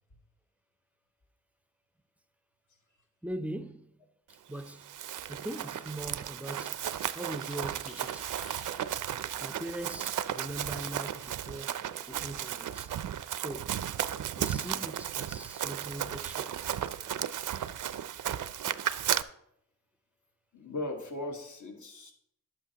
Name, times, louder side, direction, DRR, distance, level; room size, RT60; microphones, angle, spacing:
voice 1, 3.2-3.9 4.3-4.9 5.3-6.8 7.1-8.3 9.4-12.9 13.4-13.8 14.4-16.6, right 1 dB, 5° right, 0.4 m, -41 dB
Run, 4.7-19.2, right 10 dB, 70° right, 0.4 m, -34 dB
sound 1, 6.8-8.8, left 3 dB, 40° left, 3.2 m, -53 dB
voice 2, 20.5-22.1, left 2 dB, 60° left, 1.5 m, -38 dB
11.0 x 8.2 x 2.8 m
cardioid pair, 75°, 33 cm